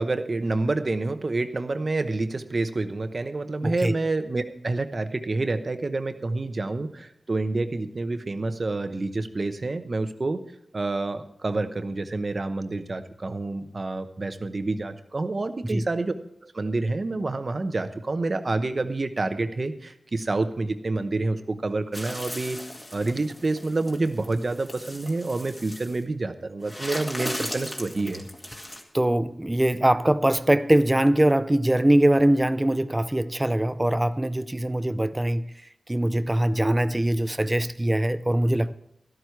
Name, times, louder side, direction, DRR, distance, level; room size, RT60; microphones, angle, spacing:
voice 1, 0.0-10.4 10.7-16.1 16.4-22.6 22.9-28.3, right 2 dB, 45° right, 0.9 m, -28 dB
voice 2, 3.6-4.0 15.6-15.9 28.9-35.5 35.9-38.7, right 1 dB, 15° right, 0.5 m, -22 dB
sound 1, 21.9-26.0 26.6-28.8, left 1 dB, 20° left, 2.1 m, -37 dB
13.0 x 12.5 x 4.6 m
wide cardioid pair, 90°, 0 cm